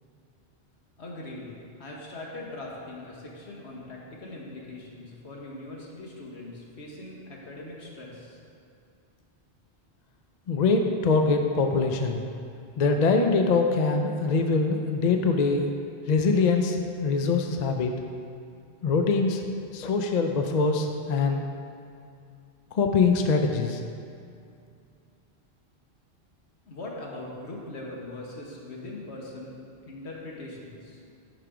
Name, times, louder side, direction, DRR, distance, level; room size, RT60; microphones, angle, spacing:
voice 1, 1.0-8.4 26.7-29.6 29.8-31.0, left 2 dB, 75° left, -3 dB, 1.6 m, -41 dB
voice 2, 10.5-12.2 12.8-15.7 16.1-17.9 18.8-19.4 19.7-21.4 22.7-23.8, left 4 dB, 50° left, 4 dB, 0.6 m, -23 dB
10.5 x 4.9 x 5.0 m, 2.5 s
omnidirectional pair, 1.1 m